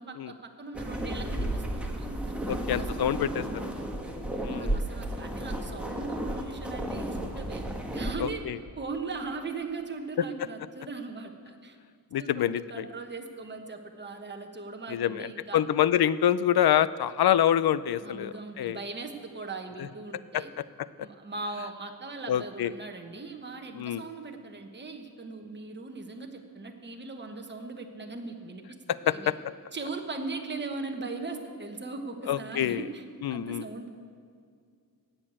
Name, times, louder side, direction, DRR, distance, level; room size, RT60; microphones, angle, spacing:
voice 1, 0.0-3.1 3.4-3.9 4.3-7.6 7.9-8.4 8.8-11.8 12.2-15.6 18.0-20.5 21.0-29.3 29.7-33.0 33.3-33.9, right 3 dB, 25° right, 3 dB, 1.2 m, -39 dB
sound 1, 0.7-8.1, right 1 dB, 5° right, 1.4 m, -33 dB
voice 2, 2.5-3.4 4.4-4.8 8.2-8.6 12.1-12.8 14.9-18.8 20.3-20.4 22.3-22.7 23.8-24.0 29.1-29.3 32.3-32.8 33.2-33.7, left 10 dB, 70° left, 17 dB, 0.5 m, -26 dB
17.5 x 6.8 x 8.7 m, 2.2 s
wide cardioid pair, 155°, 39 cm